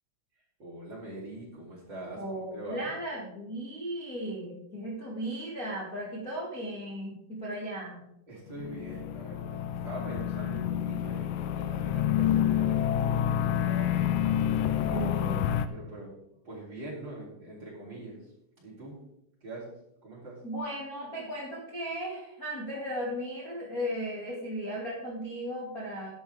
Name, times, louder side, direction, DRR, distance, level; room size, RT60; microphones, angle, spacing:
voice 1, 0.6-2.2 2.5-2.9 8.3-13.9 14.8-16.1 16.4-18.2 18.6-19.0 19.4-19.7 20.0-20.4, right 1 dB, 25° right, -6 dB, 3.4 m, -43 dB
voice 2, 2.1-8.0 14.9-15.5 20.4-26.1, equal, 30° left, -5 dB, 1.5 m, -36 dB
sound 1, 8.5-15.7, left 10 dB, 85° left, 3.3 m, -28 dB
11.5 x 11.5 x 3.6 m, 0.79 s
omnidirectional pair, 5.8 m